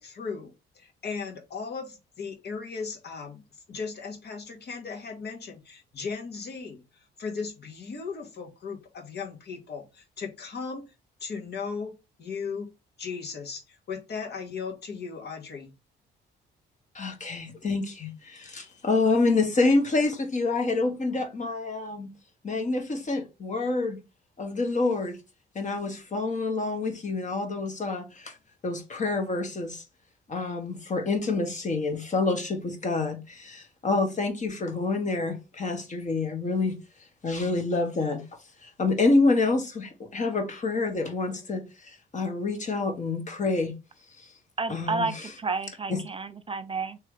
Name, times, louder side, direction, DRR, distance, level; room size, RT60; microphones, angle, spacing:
voice 1, 0.0-3.4 3.7-10.9 11.2-12.7 13.0-15.7, left 5 dB, 55° left, 1.4 m, -37 dB
voice 2, 16.9-22.1 22.4-24.0 24.4-25.2 25.5-28.3 28.6-29.8 30.3-36.8 37.2-38.2 38.6-43.7 44.7-45.1 45.9-46.0, left 3 dB, 40° left, 1.4 m, -27 dB
voice 3, 44.6-47.0, right 4 dB, 30° right, 0.4 m, -31 dB
3.3 x 3.3 x 4.7 m
cardioid pair, 90°, 20 cm